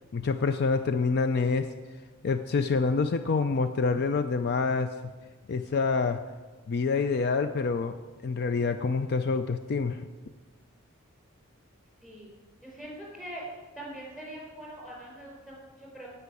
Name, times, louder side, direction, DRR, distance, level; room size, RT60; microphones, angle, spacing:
voice 1, 0.1-1.7 2.2-4.9 5.5-6.2 6.7-8.0 8.2-10.0, left 4 dB, 50° left, 9 dB, 0.5 m, -26 dB
voice 2, 12.6-13.5 13.7-16.1, right 1 dB, 5° left, -3 dB, 4.9 m, -43 dB
16.0 x 5.6 x 8.3 m, 1.4 s
head